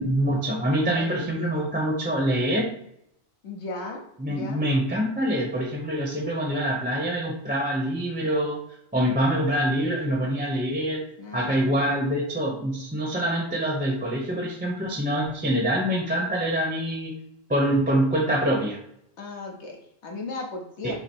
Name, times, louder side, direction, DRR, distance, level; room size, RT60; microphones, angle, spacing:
voice 1, 0.0-2.7 4.2-8.6 8.9-11.0 11.3-17.2 17.5-18.8 20.8-21.0, equal, 10° right, -1 dB, 0.7 m, -25 dB
voice 2, 3.4-4.0 4.3-4.6 11.2-11.9 19.2-21.0, left 2 dB, 75° left, -1 dB, 1.3 m, -36 dB
5.7 x 2.0 x 4.4 m, 0.73 s
omnidirectional pair, 1.1 m